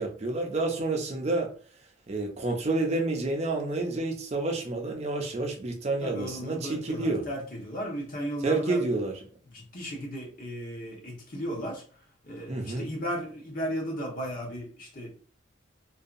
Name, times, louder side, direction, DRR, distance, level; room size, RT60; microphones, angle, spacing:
voice 1, 0.0-1.5 2.1-7.2 8.4-9.1 12.5-12.9, right 2 dB, 35° right, 0.4 m, -29 dB
voice 2, 6.0-8.8 9.5-11.8 12.2-15.1, equal, 45° left, 0.9 m, -35 dB
2.6 x 2.2 x 2.5 m
head